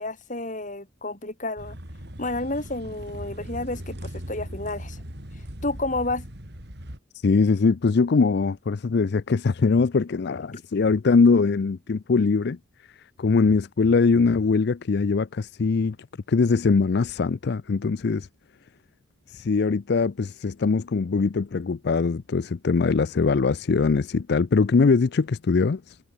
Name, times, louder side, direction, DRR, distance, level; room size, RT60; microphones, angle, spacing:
voice 1, 0.0-1.8 2.2-5.0 5.6-6.3 10.5-10.6, left 2 dB, 40° left, 6.3 m, -30 dB
sound 1, 1.6-7.0, equal, 55° right, 6.2 m, -39 dB
voice 2, 7.1-12.6 13.2-16.0 16.3-18.3 19.3-26.0, left 4 dB, 55° left, 0.5 m, -22 dB
head